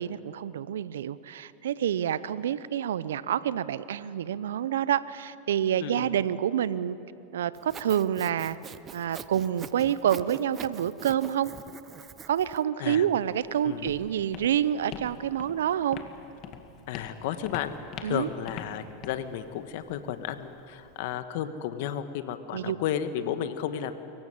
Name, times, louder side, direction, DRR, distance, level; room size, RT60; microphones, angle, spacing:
voice 1, 0.0-7.0 7.3-8.6 8.9-11.5 12.3-16.0 18.0-18.3 22.5-22.8, right 10 dB, 80° right, 17 dB, 0.7 m, -28 dB
Sawing, 7.5-12.6, right 7 dB, 30° right, 0.7 m, -43 dB
Walk footsteps, 13.2-21.1, left 7 dB, 45° left, 2.0 m, -45 dB
voice 2, 16.9-17.7 18.0-23.9, left 10 dB, 65° left, 10 dB, 1.4 m, -33 dB
24.0 x 15.5 x 9.9 m, 2.9 s
hypercardioid pair, 100°, 0 cm